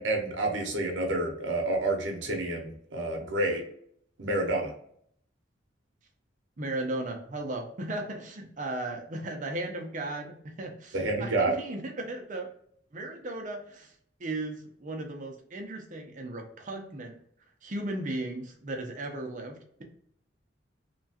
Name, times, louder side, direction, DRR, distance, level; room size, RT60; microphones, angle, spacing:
voice 1, 0.0-3.6 4.2-4.7 10.9-11.5, right 2 dB, 80° right, 2 dB, 0.8 m, -29 dB
voice 2, 6.6-12.5 12.9-13.9 14.2-17.1 17.6-19.8, right 2 dB, 40° right, 3 dB, 0.6 m, -36 dB
2.9 x 2.3 x 2.8 m, 0.66 s
head